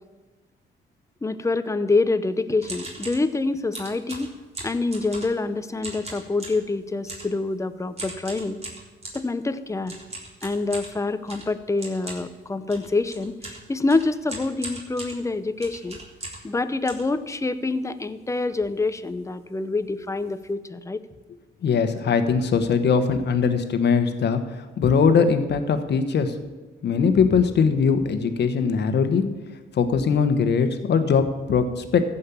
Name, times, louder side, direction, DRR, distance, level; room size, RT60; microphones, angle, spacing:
voice 1, 1.2-4.3 4.6-8.6 9.1-10.0 10.4-16.0 16.4-21.0, left 3 dB, 15° left, 12 dB, 0.7 m, -26 dB
sound 1, 2.6-3.3 3.7-5.5 5.8-6.7 7.1-7.4 8.0-9.3 9.9-16.5 16.9-17.7 18.2-18.3 18.5-18.8 19.0-19.2 19.8-19.9 20.2-20.4, right 2 dB, 30° right, 3.7 m, -39 dB
voice 2, 21.6-24.4 24.8-26.3 26.8-29.2 29.7-32.0, left 6 dB, 60° left, 9 dB, 1.3 m, -21 dB
15.0 x 5.5 x 7.2 m, 1.3 s
cardioid pair, 90°, 20 cm